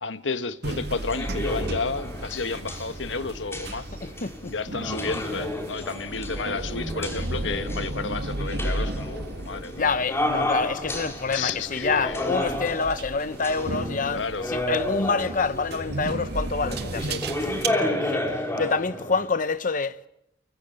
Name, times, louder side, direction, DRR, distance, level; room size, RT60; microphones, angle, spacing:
voice 1, 0.0-3.9 4.5-9.9 11.3-12.3 14.0-14.5 17.6-17.9, left 4 dB, 80° left, 1.6 m, -32 dB
sound 1, 0.6-17.7, right 2 dB, 60° right, 1.9 m, -34 dB
sound 2, 1.0-19.3, left 1 dB, 15° left, 5.0 m, -32 dB
voice 2, 4.0-4.5 9.8-14.2 14.5-17.5 18.0-20.0, left 4 dB, 45° left, 0.9 m, -27 dB
30.0 x 24.0 x 7.9 m
head